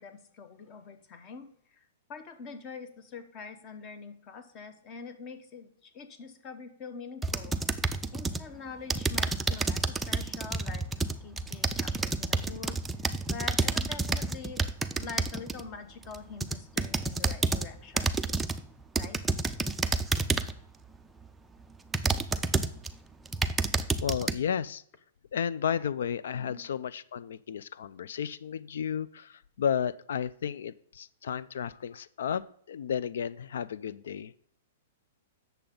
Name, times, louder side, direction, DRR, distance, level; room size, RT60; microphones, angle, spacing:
voice 1, 0.0-7.6 8.1-10.9 11.2-14.7 14.9-18.2 19.0-19.2 26.4-26.6, left 5 dB, 30° left, 10 dB, 1.0 m, -45 dB
sound 1, 7.2-8.5 8.9-15.6 16.1-17.7 18.0-18.6 19.0-20.6 21.2-21.3 21.9-22.9 23.3-24.3, right 3 dB, 5° right, 0.4 m, -29 dB
voice 2, 24.0-24.8 25.3-34.3, left 8 dB, 75° left, 18 dB, 0.3 m, -33 dB
8.6 x 6.8 x 3.7 m, 0.65 s
hypercardioid pair, 160°, 0 cm